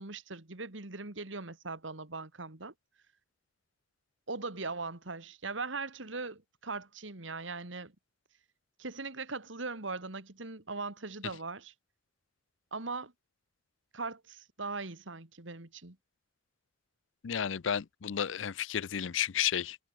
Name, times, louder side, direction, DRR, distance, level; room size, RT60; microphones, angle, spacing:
voice 1, 0.0-2.7 4.3-7.9 8.8-11.7 12.7-13.1 13.9-16.0, right 3 dB, 70° right, 2.4 m, -40 dB
voice 2, 17.2-19.8, left 9 dB, 70° left, 0.5 m, -32 dB
head